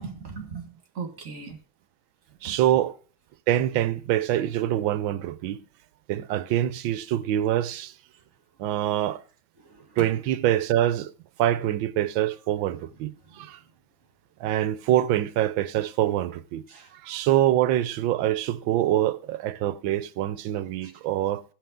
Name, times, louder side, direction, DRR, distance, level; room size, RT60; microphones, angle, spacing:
voice 1, 0.0-1.6 2.4-2.6 9.6-10.1 12.8-13.0 13.2-13.4 16.7-16.9 20.8-20.9, right 5 dB, 40° right, 2.0 m, -39 dB
voice 2, 2.4-2.9 3.5-5.6 6.1-7.9 8.6-9.2 10.0-11.1 11.4-13.6 14.4-16.6 16.9-21.4, right 12 dB, 80° right, 1.4 m, -25 dB
16.5 x 5.6 x 3.7 m
omnidirectional pair, 2.2 m